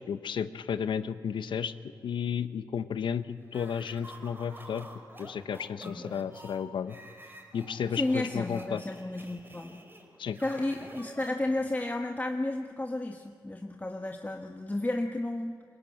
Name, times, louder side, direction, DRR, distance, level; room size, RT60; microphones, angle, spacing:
voice 1, 0.1-1.7 2.0-4.9 5.2-7.0 7.5-8.8 10.2-10.4, left 7 dB, 80° left, 12 dB, 0.8 m, -33 dB
sound 1, 3.5-11.7, right 1 dB, 25° right, 4.8 m, -49 dB
voice 2, 5.8-6.1 7.9-9.8 10.4-15.5, left 2 dB, 20° left, 3 dB, 1.5 m, -32 dB
21.5 x 16.5 x 8.8 m, 2.1 s
cardioid pair, 45°, 8 cm